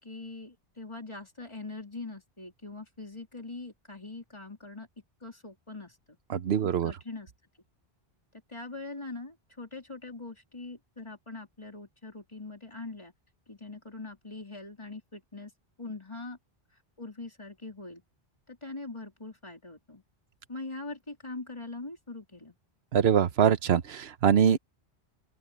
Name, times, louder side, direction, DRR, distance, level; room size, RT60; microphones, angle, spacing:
voice 1, 0.0-4.9 5.2-6.2 6.8-7.3 8.5-13.1 13.5-15.5 15.8-16.4 17.0-18.0 18.5-20.0 20.5-22.5, left 3 dB, 30° left, 3.6 m, -42 dB
voice 2, 6.3-6.9 22.9-24.6, right 8 dB, 85° right, 1.1 m, -23 dB
open air
omnidirectional pair, 1.0 m